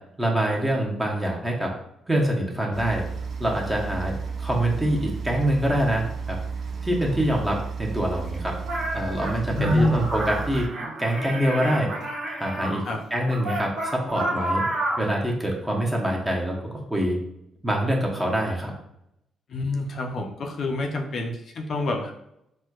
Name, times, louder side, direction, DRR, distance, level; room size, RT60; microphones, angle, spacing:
voice 1, 0.2-1.7 2.1-3.1 3.4-6.4 6.8-8.6 8.9-10.7 11.0-12.0 12.4-12.8 13.1-14.7 15.0-17.2 17.6-18.7, right 1 dB, 10° right, -1 dB, 0.8 m, -25 dB
sound 1, 2.7-10.7, right 5 dB, 50° right, 0.3 m, -33 dB
sound 2, 8.6-12.8 13.3-15.1, right 1 dB, 75° right, 1.2 m, -30 dB
voice 2, 9.5-10.1 12.8-13.0 19.5-22.1, left 1 dB, 55° left, 2 dB, 0.4 m, -26 dB
4.3 x 2.2 x 2.3 m, 0.79 s
cardioid pair, 90°, 0 cm